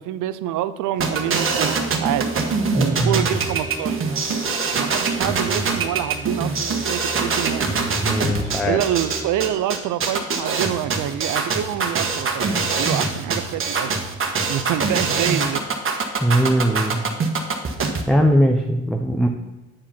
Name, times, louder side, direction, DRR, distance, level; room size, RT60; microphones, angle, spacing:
voice 1, 0.0-2.3 2.7-4.0 4.7-7.7 8.6-12.5 12.8-13.9 14.5-15.6, right 12 dB, 85° right, 14 dB, 0.6 m, -26 dB
sound 1, 0.9-9.5, right 2 dB, 25° right, 2.2 m, -36 dB
sound 2, 1.0-18.0, right 4 dB, 45° right, 1.4 m, -23 dB
voice 2, 2.8-3.1 8.0-8.8 16.2-17.0 18.1-19.3, equal, ahead, 3 dB, 0.7 m, -19 dB
8.8 x 4.9 x 5.7 m, 1.1 s
cardioid pair, 90°, 30 cm